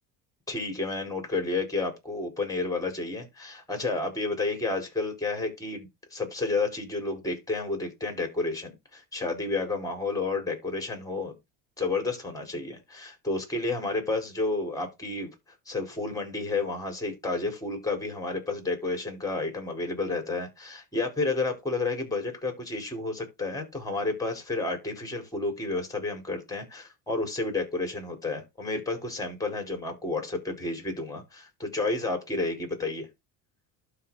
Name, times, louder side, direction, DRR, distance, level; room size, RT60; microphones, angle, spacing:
voice 1, 0.5-11.4 11.8-15.3 15.7-33.1, left 3 dB, 10° left, 4.8 m, -31 dB
12.0 x 4.1 x 4.2 m
supercardioid pair, 105°, 38 cm